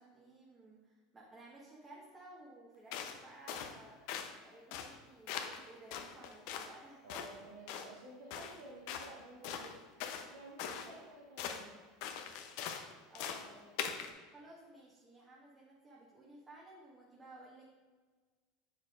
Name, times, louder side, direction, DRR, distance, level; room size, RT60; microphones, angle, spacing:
voice 1, 0.0-7.1 13.1-13.8 14.3-17.8, right 2 dB, 25° right, -5 dB, 1.5 m, -56 dB
sound 1, 2.9-3.2 3.5-3.8 4.1-4.3 4.7-5.0 5.3-5.6 5.9-6.7 7.1-7.3 7.7-7.9 8.3-8.6 8.9-9.1 9.4-10.3 10.6-10.9 11.4-11.6 12.0-12.9 13.2-13.5 13.8-14.1, left 8 dB, 65° left, 0.7 m, -41 dB
voice 2, 7.0-9.8 10.3-11.7, right 2 dB, 80° right, -3 dB, 1.8 m, -53 dB
7.7 x 6.5 x 2.5 m, 1.4 s
hypercardioid pair, 90°, 0 cm